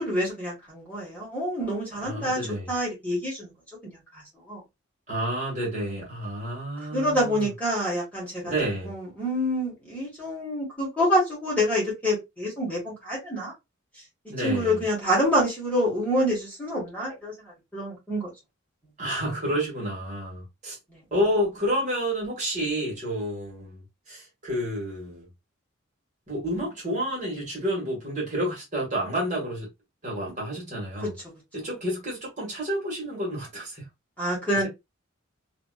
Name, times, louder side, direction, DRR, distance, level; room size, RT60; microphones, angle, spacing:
voice 1, 0.0-2.4 2.7-3.5 3.8-4.0 4.5-4.6 6.9-8.5 8.8-13.5 14.4-18.3 20.9-21.0 34.2-34.7, equal, 5° left, 1.6 m, -27 dB
voice 2, 1.9-2.7 5.1-7.5 8.4-8.9 14.3-14.8 19.0-20.8 21.1-23.8 24.1-25.3 26.3-29.7 30.0-31.1 31.5-33.9, equal, 35° right, 1.6 m, -30 dB
2.9 x 2.8 x 2.3 m
head